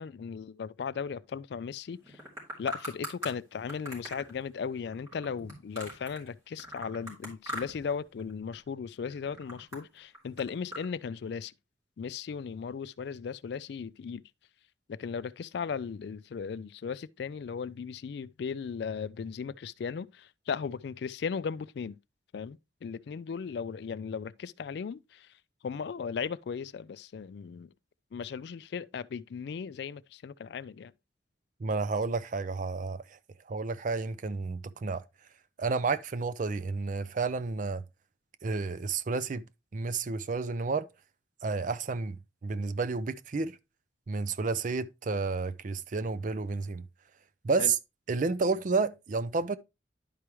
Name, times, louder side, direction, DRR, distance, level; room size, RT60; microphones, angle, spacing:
voice 1, 0.0-2.2 2.6-11.5 12.0-14.2 14.9-22.0 22.3-27.7 28.1-30.9 47.6-47.7, left 6 dB, 60° left, 0.3 m, -37 dB
sound 1, 2.0-3.3 3.7-6.3 6.6-7.9 8.2-8.7 9.1-10.8, equal, 15° right, 3.1 m, -41 dB
voice 2, 31.6-33.2 33.5-35.0 35.6-37.8 38.4-39.5 39.7-40.9 41.4-43.6 44.1-46.9 47.4-47.7 48.1-49.6, right 4 dB, 40° right, 0.4 m, -31 dB
11.0 x 4.8 x 3.0 m
head